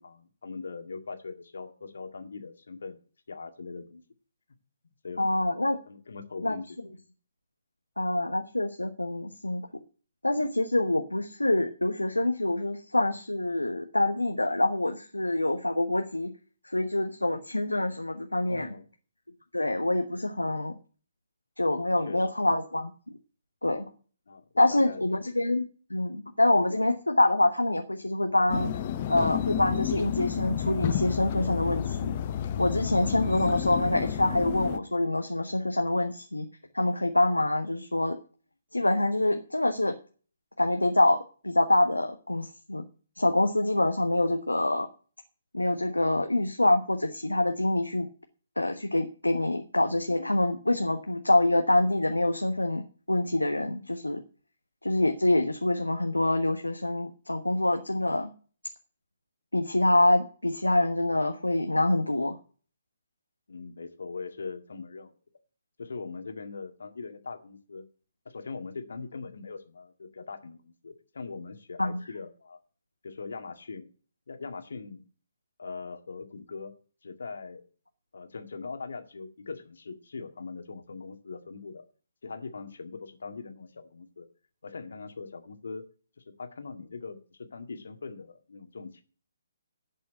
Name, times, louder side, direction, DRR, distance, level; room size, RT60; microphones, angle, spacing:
voice 1, 0.0-3.0 3.3-4.0 5.0-5.2 5.9-6.7 18.4-18.9 20.5-20.6 22.0-22.3 24.3-25.0 63.5-65.1 65.8-67.8 68.3-72.6 73.0-73.9 74.3-75.0 75.6-76.7 77.0-77.7 78.1-81.8 82.2-84.3 84.6-85.8 86.2-89.0, left 4 dB, 65° left, 7 dB, 2.0 m, -41 dB
voice 2, 5.2-5.8 6.4-6.6 8.0-9.6 10.2-16.3 16.6-18.7 19.5-20.7 21.6-22.9 23.6-23.9 24.6-25.6 25.9-28.7 29.1-32.2 32.6-36.5 36.7-38.2 38.7-40.0 40.6-41.2 41.4-42.8 43.2-44.9 45.5-48.1 48.6-54.2 54.8-58.3 59.5-62.3 71.8-71.9, left 1 dB, 85° left, 6 dB, 1.2 m, -26 dB
sound 1, 28.5-34.8, left 9 dB, 35° left, 0.8 m, -31 dB
11.0 x 5.5 x 8.8 m, 0.39 s
figure-of-eight pair, 135°, 0 cm